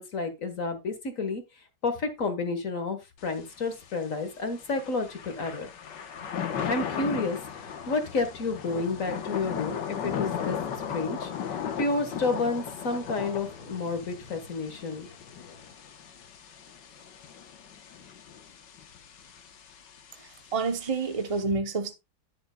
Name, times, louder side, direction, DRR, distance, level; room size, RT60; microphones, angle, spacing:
voice 1, 0.0-1.4 1.8-5.7 6.6-10.6 10.9-15.1, left 3 dB, 45° left, 1.7 m, -30 dB
Thunder / Rain, 3.2-21.4, left 8 dB, 65° left, 1.7 m, -37 dB
sound 1, 6.1-15.7, left 3 dB, 80° left, 2.6 m, -50 dB
voice 2, 20.5-21.9, right 4 dB, 45° right, 0.4 m, -28 dB
10.0 x 10.0 x 2.3 m
omnidirectional pair, 2.1 m